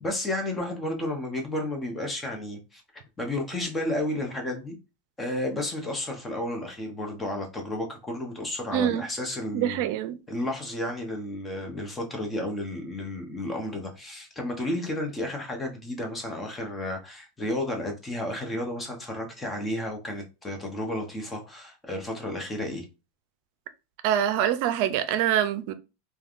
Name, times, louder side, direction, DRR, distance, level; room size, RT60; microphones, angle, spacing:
voice 1, 0.0-2.8 3.2-4.8 5.2-9.8 10.3-22.9, left 1 dB, 15° left, 0.9 m, -32 dB
voice 2, 8.7-9.0 9.5-10.2 24.0-25.7, right 10 dB, 60° right, 0.4 m, -25 dB
3.2 x 2.2 x 2.5 m
hypercardioid pair, 115°, 0 cm